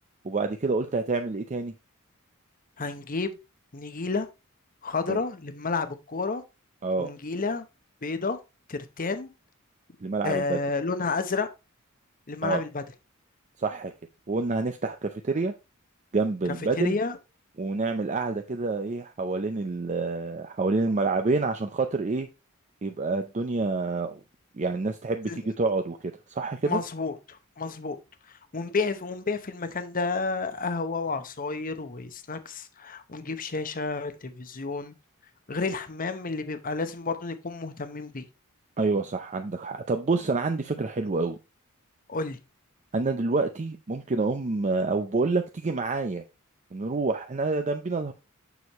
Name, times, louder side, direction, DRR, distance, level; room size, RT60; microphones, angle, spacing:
voice 1, 0.2-1.7 5.1-5.2 6.8-7.1 10.0-10.6 12.4-12.6 13.6-13.9 14.3-15.5 16.1-17.0 17.6-22.3 22.8-24.2 24.6-26.0 26.3-26.8 38.8-41.4 42.9-46.2 46.7-48.1, right 3 dB, 35° right, 0.5 m, -27 dB
voice 2, 2.8-3.4 3.7-4.3 4.8-6.4 7.0-7.7 8.0-8.4 8.7-9.3 10.2-11.5 12.3-12.8 16.7-17.2 25.2-25.4 26.6-28.0 28.5-34.9 35.5-38.3 42.1-42.4, left 4 dB, 40° left, 0.9 m, -30 dB
7.1 x 6.3 x 3.0 m
head